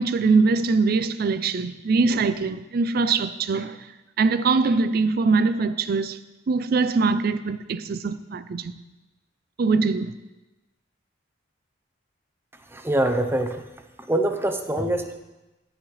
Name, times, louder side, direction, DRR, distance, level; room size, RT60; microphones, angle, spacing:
voice 1, 0.0-3.9 4.2-6.2 6.5-8.7 9.6-10.1, right 4 dB, 55° right, 0.4 m, -22 dB
voice 2, 12.7-13.6 14.0-15.2, right 1 dB, 15° right, 0.7 m, -24 dB
14.0 x 8.7 x 3.2 m
head